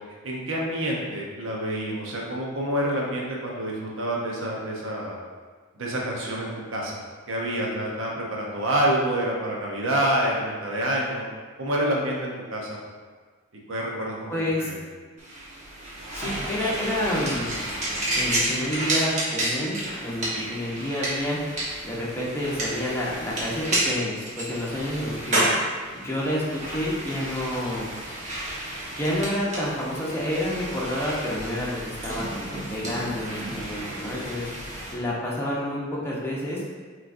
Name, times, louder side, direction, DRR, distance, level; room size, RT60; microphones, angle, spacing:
voice 1, 0.2-5.2 5.8-11.2 11.6-12.8 13.7-14.3 14.6-14.8, right 1 dB, 65° right, -2 dB, 0.9 m, -27 dB
voice 2, 14.3-14.7 16.1-17.5 18.1-21.4 21.8-25.5 26.0-27.9 29.0-34.5 34.9-36.6, left 1 dB, 10° left, -7 dB, 0.8 m, -29 dB
sound 1, 15.2-34.9, right 1 dB, 35° right, 1.1 m, -31 dB
6.1 x 3.2 x 2.6 m, 1.5 s
head